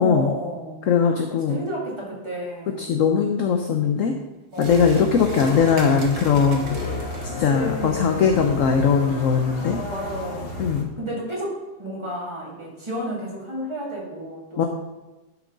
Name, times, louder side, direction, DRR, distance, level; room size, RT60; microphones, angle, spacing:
voice 1, 0.0-2.9 4.5-5.0 7.3-8.2 9.9-10.7 11.0-14.7, right 1 dB, 15° right, -5 dB, 2.5 m, -32 dB
voice 2, 0.9-1.6 2.8-4.1 4.6-6.8 7.4-9.8 10.6-10.9 14.6-14.7, left 6 dB, 60° left, 4 dB, 1.0 m, -20 dB
sound 1, 4.5-7.5, right 4 dB, 65° right, 1.7 m, -42 dB
sound 2, 4.6-10.8, left 2 dB, 40° left, 1.2 m, -32 dB
11.0 x 6.2 x 3.9 m, 1.1 s
omnidirectional pair, 1.9 m